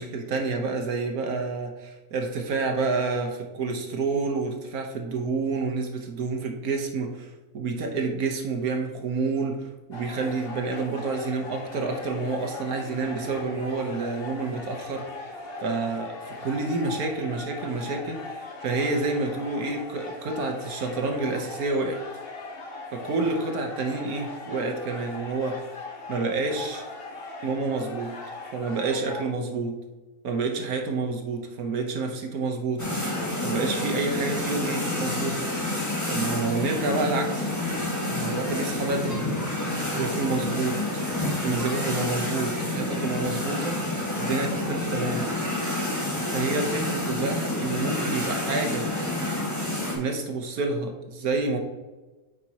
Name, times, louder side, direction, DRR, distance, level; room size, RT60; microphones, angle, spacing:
voice 1, 0.0-15.3 15.6-22.0 22.9-25.6 26.1-26.8 27.4-28.1 28.5-29.8 30.2-32.9 33.4-35.4 36.1-37.5 38.1-39.2 39.9-40.8 41.4-43.8 44.2-45.2 46.3-48.9 49.9-51.6, right 3 dB, 80° right, 4 dB, 1.5 m, -29 dB
sound 1, 9.9-29.2, left 3 dB, 45° left, 1.3 m, -39 dB
sound 2, 32.8-50.0, left 1 dB, 10° left, 1.4 m, -29 dB
9.0 x 5.2 x 2.9 m, 1.2 s
omnidirectional pair, 1.5 m